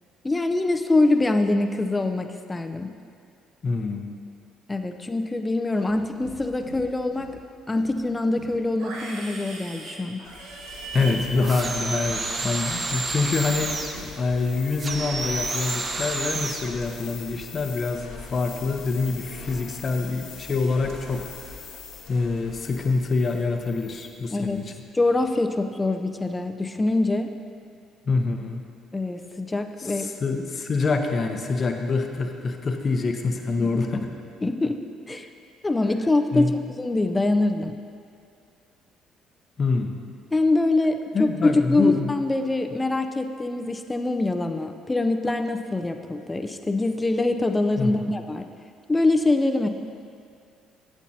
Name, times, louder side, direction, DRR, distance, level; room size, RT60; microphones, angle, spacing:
voice 1, 0.2-2.9 4.7-7.4 7.7-10.2 24.3-24.6 24.9-27.3 28.9-30.1 33.6-33.7 34.4-35.3 35.6-36.5 36.8-37.8 40.3-48.4 48.9-49.7, left 2 dB, 20° left, 7 dB, 0.5 m, -24 dB
voice 2, 3.6-4.1 10.9-21.3 22.1-24.7 28.1-28.6 29.9-34.1 36.3-36.5 39.6-40.0 41.1-42.1 47.8-48.1, left 4 dB, 45° left, 5 dB, 0.8 m, -26 dB
Livestock farm animals working animals, 5.7-6.4 6.6-7.4 7.7-13.3 13.6-14.1, right 2 dB, 75° right, 1.2 m, -39 dB
sound 1, 10.2-24.3, left 5 dB, 80° left, 1.4 m, -42 dB
sound 2, 11.4-14.0 14.8-16.7, right 3 dB, 35° right, 0.8 m, -30 dB
12.0 x 7.2 x 2.8 m, 2.3 s
hypercardioid pair, 60°, 0 cm